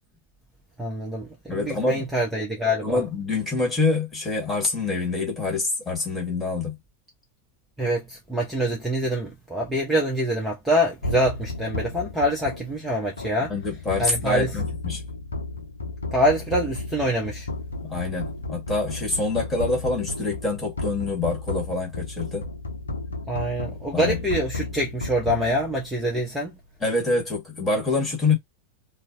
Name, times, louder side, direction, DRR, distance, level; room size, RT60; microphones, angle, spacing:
voice 1, 0.8-3.0 7.8-13.5 14.0-14.5 16.1-17.5 23.3-26.5, equal, 5° right, 0.7 m, -25 dB
voice 2, 1.5-2.1 2.8-6.8 13.5-15.0 17.8-22.5 23.9-24.2 26.8-28.4, left 3 dB, 15° left, 1.3 m, -26 dB
sound 1, 11.0-26.3, left 2 dB, 70° left, 0.6 m, -33 dB
2.6 x 2.0 x 2.5 m
figure-of-eight pair, 90°, 0 cm